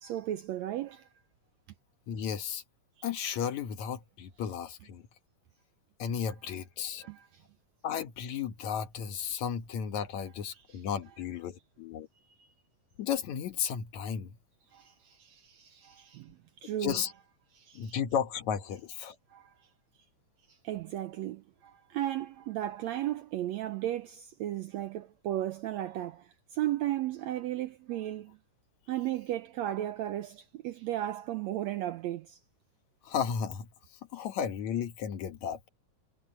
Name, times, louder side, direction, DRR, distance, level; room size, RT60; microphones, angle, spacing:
voice 1, 0.0-1.1 3.0-3.1 7.0-7.4 10.5-10.8 12.4-12.5 14.7-17.0 17.5-18.0 19.3-19.5 20.5-28.4 28.9-32.4 34.1-34.2, right 13 dB, 80° right, 1.6 m, -35 dB
voice 2, 2.1-2.6 3.0-5.0 6.0-7.1 7.8-12.1 13.0-14.3 16.8-17.1 17.7-19.2 33.0-33.7 34.1-35.6, left 8 dB, 65° left, 2.5 m, -34 dB
omnidirectional pair, 3.8 m